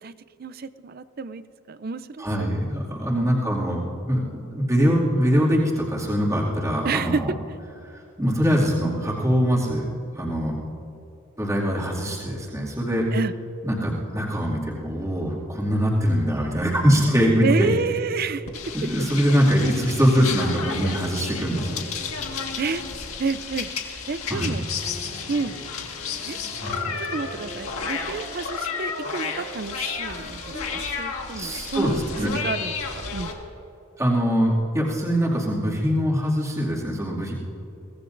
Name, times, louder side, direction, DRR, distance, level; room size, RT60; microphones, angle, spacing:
voice 1, 0.4-2.5 3.1-3.3 6.8-7.4 13.1-13.3 17.4-18.5 18.8-18.9 22.6-22.8 23.2-24.7 25.3-25.6 26.2-26.4 27.0-33.3, right 4 dB, 45° right, 13 dB, 0.5 m, -30 dB
voice 2, 2.2-7.3 8.2-9.8 10.2-10.5 11.4-13.1 13.6-17.7 18.7-21.8 24.3-24.5 26.6-26.7 30.5-30.7 31.4-32.3 34.0-37.3, equal, 15° right, -5 dB, 2.4 m, -23 dB
sound 1, 18.5-33.3, left 5 dB, 90° left, 1.8 m, -32 dB
sound 2, 21.5-23.5 24.7-30.5, right 1 dB, 85° right, 3.7 m, -42 dB
23.0 x 18.0 x 2.6 m, 2.9 s
head